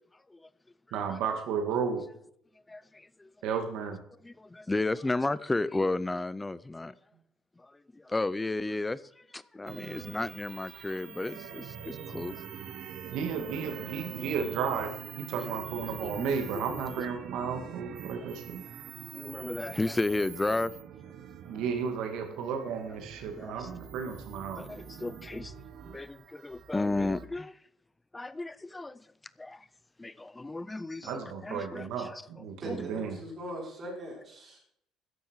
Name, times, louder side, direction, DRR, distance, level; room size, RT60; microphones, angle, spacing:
voice 1, 0.9-2.0 3.4-4.0 13.1-14.9 15.2-18.6 21.5-24.6 31.0-33.2, right 6 dB, 70° right, 2.2 m, -33 dB
voice 2, 2.7-3.3 4.2-6.9 7.6-12.4 13.0-13.2 16.0-16.3 16.5-16.6 17.0-17.1 19.1-20.7 21.5-21.6 23.4-23.7 24.6-25.5 25.9-27.6 28.1-29.0 29.4-29.7 30.0-32.2 32.7-32.8, left 2 dB, 10° left, 0.5 m, -33 dB
sound 1, 9.7-27.3, right 8 dB, 50° right, 1.1 m, -44 dB
voice 3, 32.6-34.6, right 1 dB, 25° right, 5.5 m, -40 dB
13.5 x 10.5 x 4.7 m
cardioid pair, 170°, 0 cm